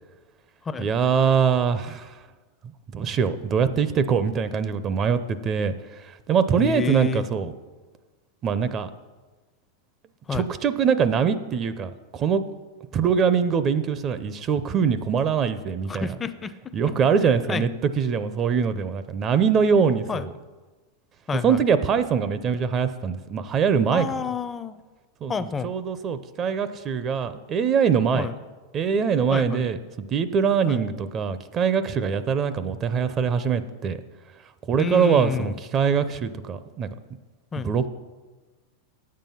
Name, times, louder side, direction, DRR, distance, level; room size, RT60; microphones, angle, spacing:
voice 1, 0.8-2.1 2.9-7.5 8.4-8.9 10.3-12.4 12.9-16.1 16.7-20.3 21.4-24.1 25.2-28.3 28.7-34.0 34.7-36.9 37.6-37.9, right 6 dB, 30° right, 12 dB, 0.5 m, -23 dB
voice 2, 6.5-7.2 10.3-10.5 15.9-16.7 17.5-17.6 20.1-20.3 21.3-21.6 23.9-24.8 25.3-25.7 28.1-28.4 29.3-29.7 30.7-30.8 34.8-35.5 37.5-37.7, left 5 dB, 20° left, 12 dB, 0.5 m, -29 dB
8.7 x 7.5 x 5.5 m, 1.3 s
hypercardioid pair, 125°, 0 cm